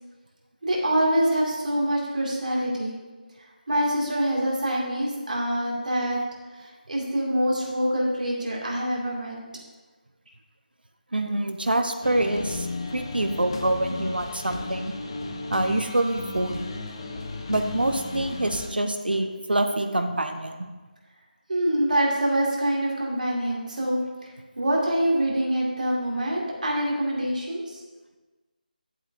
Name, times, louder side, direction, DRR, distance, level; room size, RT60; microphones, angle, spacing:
voice 1, 0.6-2.9 3.7-6.2 6.6-9.4 21.5-24.3 24.6-27.8, right 1 dB, 60° right, -3 dB, 2.3 m, -25 dB
voice 2, 11.1-12.7 12.9-14.9 15.5-16.7 17.5-20.7, right 1 dB, 85° right, 6 dB, 0.9 m, -26 dB
sound 1, 12.0-18.7, left 3 dB, 30° left, 0.6 m, -34 dB
10.5 x 7.8 x 2.6 m, 1.3 s
figure-of-eight pair, 165°, 5 cm